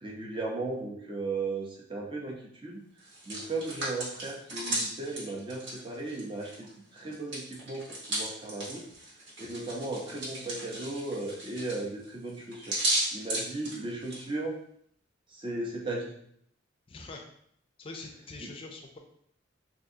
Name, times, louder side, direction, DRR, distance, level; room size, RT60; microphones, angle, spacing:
voice 1, 0.0-2.8 3.2-6.7 6.9-8.8 9.4-12.7 13.1-14.6 15.3-16.1 18.4-18.5, right 2 dB, 25° right, -2 dB, 0.6 m, -36 dB
Hands, 3.0-6.7 7.0-14.2, right 1 dB, 70° right, 1.2 m, -35 dB
voice 2, 16.9-17.3 17.8-19.0, left 3 dB, 30° left, 3 dB, 0.4 m, -43 dB
3.5 x 2.5 x 2.7 m, 0.69 s
head